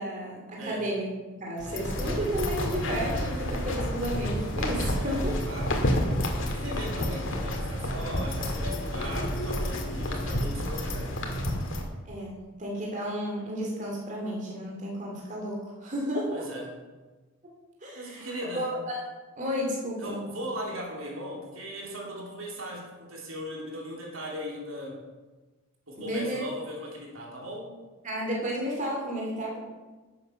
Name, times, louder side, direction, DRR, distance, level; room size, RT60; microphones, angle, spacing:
voice 1, 0.0-5.3 12.1-16.5 17.8-19.0 19.4-20.2 26.0-26.4 28.0-29.6, equal, 35° right, -2 dB, 2.3 m, -32 dB
sound 1, 1.6-11.8, left 1 dB, 65° left, 1.9 m, -30 dB
voice 2, 4.9-6.2 6.5-11.1 16.3-16.7 17.9-18.7 20.0-25.0 25.9-27.7, equal, 75° right, -2 dB, 3.0 m, -38 dB
11.5 x 7.8 x 5.7 m, 1.2 s
head